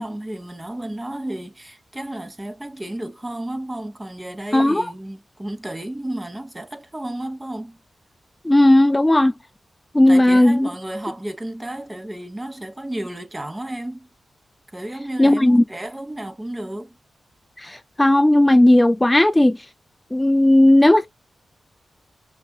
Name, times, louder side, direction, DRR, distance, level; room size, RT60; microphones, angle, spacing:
voice 1, 0.0-7.8 10.1-14.1 14.7-17.0, right 1 dB, 20° right, 1.2 m, -32 dB
voice 2, 4.5-4.9 8.5-9.3 9.9-10.7 15.2-15.6 17.6-19.6 20.1-21.1, left 1 dB, 20° left, 0.3 m, -15 dB
5.7 x 2.6 x 2.2 m
supercardioid pair, 40°, 0 cm